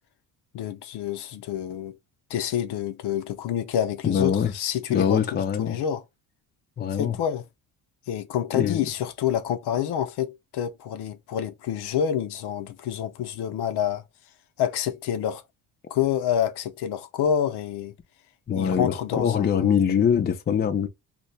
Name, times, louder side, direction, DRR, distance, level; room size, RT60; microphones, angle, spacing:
voice 1, 0.5-2.0 2.3-6.0 6.9-7.4 8.1-14.0 14.6-15.4 15.9-18.0 18.5-19.8, left 9 dB, 70° left, 0.7 m, -28 dB
voice 2, 4.0-4.5 4.9-5.8 6.8-7.2 8.5-8.8 18.5-20.9, left 7 dB, 25° left, 0.5 m, -23 dB
2.8 x 2.2 x 4.1 m
cardioid pair, 130°, 41 cm